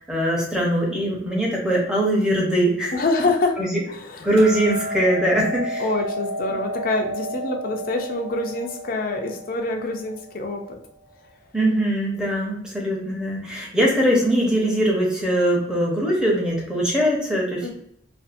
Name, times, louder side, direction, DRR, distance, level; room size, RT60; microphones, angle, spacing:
voice 1, 0.0-2.9 3.6-3.8 4.2-5.8 11.5-17.7, right 1 dB, 5° right, -4 dB, 0.7 m, -21 dB
voice 2, 2.9-3.6 3.9-4.3 5.8-10.8 17.6-17.7, left 3 dB, 50° left, 3 dB, 0.4 m, -26 dB
Hammer, 4.4-10.6, equal, 60° right, 0.9 m, -31 dB
2.6 x 2.4 x 2.5 m, 0.75 s
head